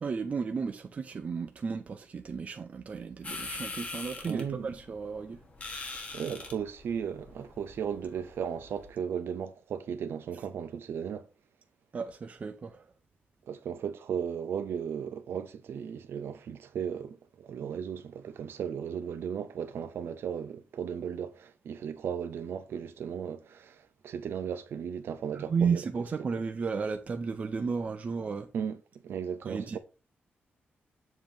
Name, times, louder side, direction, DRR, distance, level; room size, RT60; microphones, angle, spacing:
voice 1, 0.0-5.4 11.9-12.9 25.3-28.5 29.4-29.8, right 5 dB, 35° right, 0.6 m, -33 dB
sound 1, 3.2-8.9, left 3 dB, 35° left, 1.4 m, -43 dB
voice 2, 4.3-4.7 6.1-11.3 13.4-25.8 28.5-28.8 29.0-29.8, right 7 dB, 75° right, 0.8 m, -36 dB
7.5 x 3.0 x 5.1 m
wide cardioid pair, 155°, 4 cm